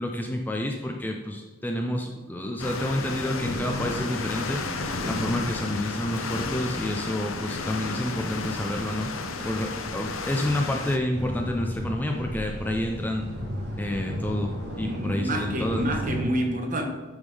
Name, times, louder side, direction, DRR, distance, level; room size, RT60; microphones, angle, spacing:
voice 1, 0.0-4.6 5.0-9.1 9.4-13.3 13.8-15.9, left 1 dB, 10° left, 2 dB, 0.4 m, -29 dB
sound 1, 2.6-11.0, left 3 dB, 80° left, 0.7 m, -32 dB
sound 2, 11.1-16.2, equal, 55° right, 1.8 m, -34 dB
voice 2, 14.8-16.9, right 1 dB, 40° right, 3 dB, 1.1 m, -28 dB
9.9 x 3.6 x 4.8 m, 1.3 s
head